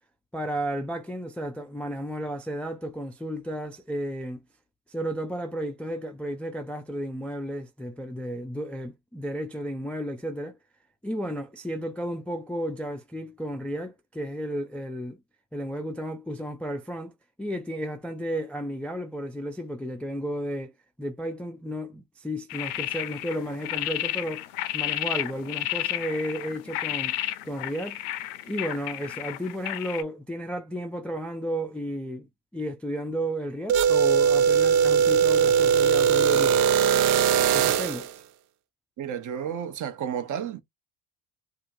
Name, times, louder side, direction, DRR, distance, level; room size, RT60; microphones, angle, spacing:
voice 1, 0.3-4.4 4.9-10.6 11.0-15.2 15.5-20.7 21.0-24.5 24.7-27.1 27.4-28.0 28.5-36.6 37.5-38.1, equal, 5° left, 0.3 m, -33 dB
sound 1, 22.5-30.0, left 15 dB, 75° left, 0.6 m, -32 dB
sound 2, 33.7-38.1, right 7 dB, 75° right, 0.6 m, -20 dB
voice 2, 39.0-40.6, right 8 dB, 45° right, 0.8 m, -32 dB
2.7 x 2.4 x 2.6 m
hypercardioid pair, 75°, 43 cm